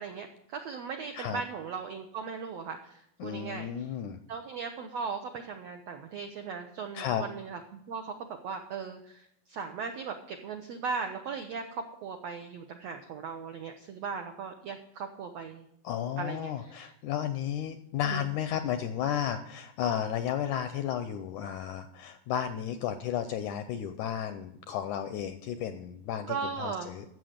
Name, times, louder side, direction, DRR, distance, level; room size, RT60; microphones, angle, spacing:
voice 1, 0.0-3.8 4.3-15.6 16.2-16.9 18.0-18.2 26.3-26.9, right 5 dB, 80° right, 5 dB, 1.5 m, -38 dB
voice 2, 3.2-4.2 6.9-7.2 15.8-27.0, left 9 dB, 80° left, 9 dB, 1.8 m, -33 dB
14.0 x 7.7 x 5.1 m, 0.74 s
omnidirectional pair, 4.1 m